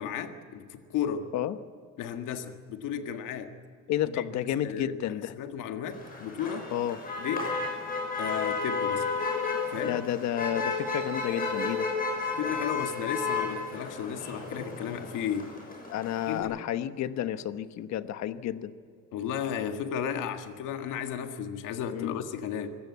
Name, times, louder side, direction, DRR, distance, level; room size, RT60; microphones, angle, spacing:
voice 1, 0.0-1.3 2.0-3.5 4.1-4.2 4.6-5.0 5.3-6.7 7.2-7.5 8.2-9.1 9.7-10.0 12.4-15.6 16.3-16.6 19.1-22.7, left 8 dB, 90° left, 7 dB, 1.8 m, -34 dB
voice 2, 3.9-5.3 6.7-7.0 9.8-11.9 15.9-18.7 21.9-22.1, left 11 dB, 60° left, 12 dB, 1.1 m, -31 dB
Motor vehicle (road), 5.9-16.4, left 4 dB, 30° left, 6.2 m, -33 dB
25.0 x 17.0 x 8.3 m, 2.1 s
cardioid pair, 160°, 31 cm